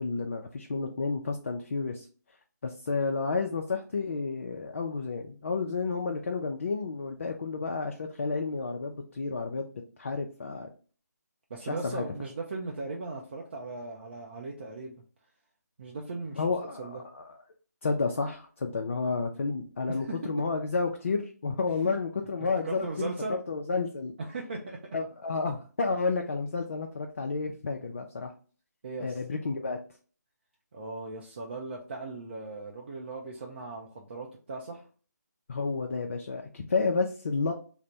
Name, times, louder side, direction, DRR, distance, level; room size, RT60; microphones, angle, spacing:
voice 1, 0.0-2.1 2.6-9.7 10.0-10.7 11.6-12.0 16.4-17.3 17.8-23.1 23.5-24.1 24.9-28.3 29.0-29.8 35.5-37.5, left 4 dB, 45° left, 3 dB, 0.4 m, -31 dB
voice 2, 11.5-14.9 15.8-16.4 16.8-17.0 19.9-20.2 21.8-22.0 22.4-23.4 24.2-24.8 28.8-29.2 30.7-34.9, right 3 dB, 35° right, -1 dB, 0.5 m, -38 dB
3.3 x 2.0 x 3.9 m, 0.40 s
figure-of-eight pair, 155°, 10 cm